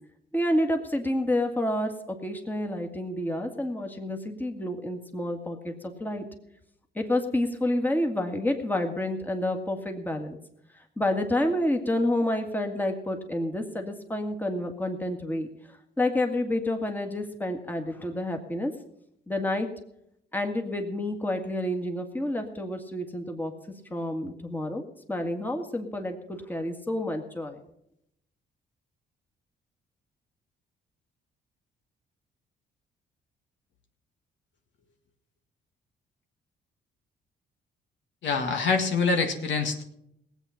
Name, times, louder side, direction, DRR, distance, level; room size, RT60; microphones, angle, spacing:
voice 1, 0.3-6.2 7.0-10.4 11.0-15.5 16.0-18.7 19.3-19.7 20.3-23.5 23.9-24.8 25.1-27.6, left 1 dB, 10° left, 4 dB, 1.9 m, -29 dB
voice 2, 38.2-39.8, left 4 dB, 70° left, 4 dB, 1.8 m, -25 dB
18.5 x 8.2 x 5.8 m, 0.76 s
cardioid pair, 90°, 20 cm